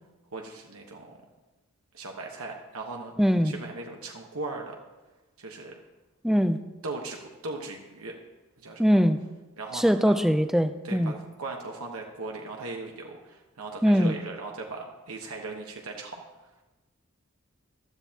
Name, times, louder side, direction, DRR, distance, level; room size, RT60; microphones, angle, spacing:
voice 1, 0.3-1.2 1.9-4.8 5.4-5.7 6.8-8.2 8.6-9.0 9.6-10.1 10.8-16.2, right 3 dB, 80° right, 1 dB, 1.2 m, -38 dB
voice 2, 3.2-3.5 6.2-6.6 8.8-9.2 9.7-11.1 13.8-14.1, equal, ahead, 10 dB, 0.4 m, -21 dB
15.0 x 13.0 x 2.9 m, 1.1 s
head